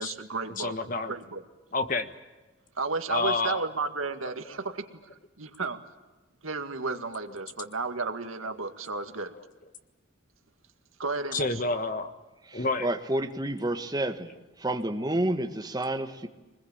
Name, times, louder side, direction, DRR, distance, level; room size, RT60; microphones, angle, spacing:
voice 1, 0.0-0.7 1.1-1.4 2.8-4.9 5.4-5.8 6.4-9.3 11.0-11.6, right 4 dB, 80° right, 7 dB, 2.1 m, -33 dB
voice 2, 0.6-1.1 1.7-2.1 3.1-3.6 9.4-9.5 11.3-12.1 12.5-12.9, left 3 dB, 40° left, 8 dB, 1.5 m, -28 dB
voice 3, 12.5-14.3 14.6-16.3, right 1 dB, 20° right, 6 dB, 1.6 m, -29 dB
24.5 x 21.0 x 8.8 m, 1.1 s
head